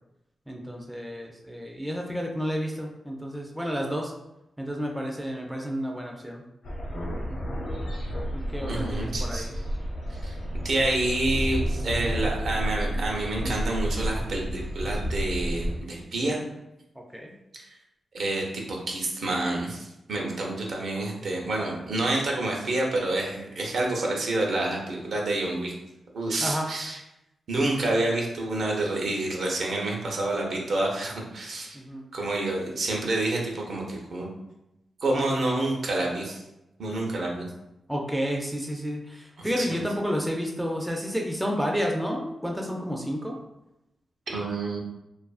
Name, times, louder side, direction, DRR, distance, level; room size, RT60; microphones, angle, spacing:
voice 1, 0.5-4.1 4.6-6.4 7.2-7.5 8.3-9.5 17.1-17.3 26.4-26.7 31.7-32.0 37.9-43.4, equal, 5° right, 0 dB, 0.3 m, -31 dB
sound 1, 6.6-15.8, equal, 70° left, 0.7 m, -30 dB
voice 2, 8.7-9.4 10.1-10.4 10.6-16.4 18.1-25.7 26.1-27.0 27.5-31.8 32.1-34.3 35.0-36.4 36.8-37.5 39.4-39.8 44.3-44.8, right 2 dB, 65° right, -1 dB, 0.6 m, -28 dB
2.6 x 2.4 x 2.3 m, 0.90 s
wide cardioid pair, 115°, 0 cm